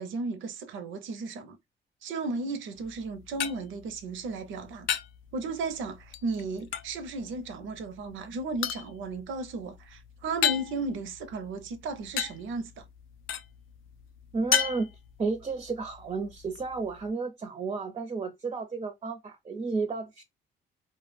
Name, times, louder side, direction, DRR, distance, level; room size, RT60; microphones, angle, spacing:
voice 1, 0.0-1.6 2.0-4.9 5.3-12.9, right 3 dB, 75° right, 0.5 m, -35 dB
sound 1, 2.8-17.1, left 10 dB, 80° left, 0.4 m, -36 dB
voice 2, 14.3-14.9 15.2-20.2, right 4 dB, 30° right, 0.4 m, -32 dB
2.2 x 2.0 x 3.1 m
cardioid pair, 90°, 20 cm